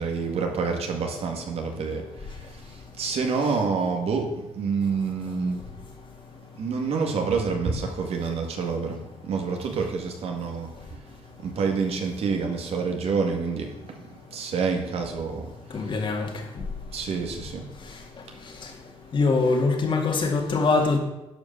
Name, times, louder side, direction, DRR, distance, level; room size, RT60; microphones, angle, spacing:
voice 1, 0.0-16.4 16.7-17.7 18.3-18.4, right 5 dB, 65° right, 3 dB, 2.0 m, -28 dB
voice 2, 15.7-16.6 17.8-18.7 19.1-21.0, left 3 dB, 45° left, 2 dB, 2.2 m, -24 dB
11.0 x 5.3 x 6.7 m, 0.97 s
cardioid pair, 95°, 11 cm